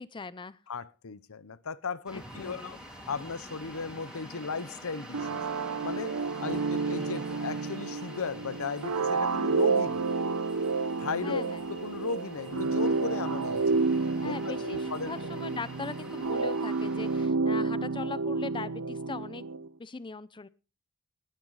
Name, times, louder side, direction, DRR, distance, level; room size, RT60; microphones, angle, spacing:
voice 1, 0.0-0.6 2.1-2.7 6.5-6.7 11.2-11.6 14.2-19.5 19.8-20.5, left 4 dB, 20° left, 0.5 m, -40 dB
voice 2, 0.7-2.8 3.1-5.4 5.8-6.1 6.4-10.1 11.0-11.4 11.7-13.8 14.1-15.1, left 4 dB, 65° left, 0.8 m, -36 dB
sound 1, 2.1-17.3, equal, 5° right, 3.7 m, -47 dB
sound 2, 2.2-16.7, right 4 dB, 65° right, 2.6 m, -57 dB
sound 3, 5.1-19.7, right 4 dB, 85° right, 0.8 m, -30 dB
19.5 x 9.1 x 4.0 m
head